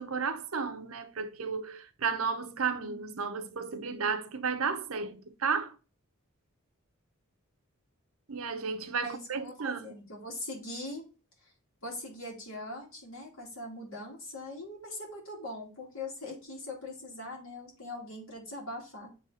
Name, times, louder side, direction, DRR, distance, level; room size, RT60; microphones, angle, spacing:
voice 1, 0.0-5.8 8.3-10.0, right 5 dB, 75° right, 0.7 m, -33 dB
voice 2, 9.0-11.0 11.8-19.1, left 2 dB, 65° left, 2.7 m, -41 dB
7.6 x 3.4 x 4.0 m
head